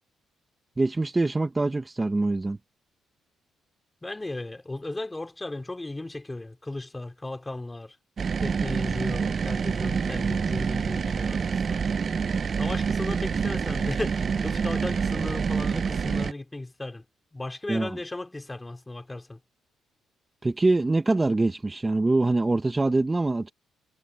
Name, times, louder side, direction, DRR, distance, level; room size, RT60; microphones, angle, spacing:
voice 1, 0.8-2.6 17.7-17.9 20.4-23.5, right 2 dB, 20° right, 1.6 m, -24 dB
voice 2, 4.0-8.0 8.4-11.4 11.7-11.8 12.5-17.0 17.3-19.4, left 2 dB, 15° left, 2.9 m, -35 dB
sound 1, 8.2-16.3, right 6 dB, 45° right, 0.8 m, -27 dB
cardioid pair, 90°, 0 cm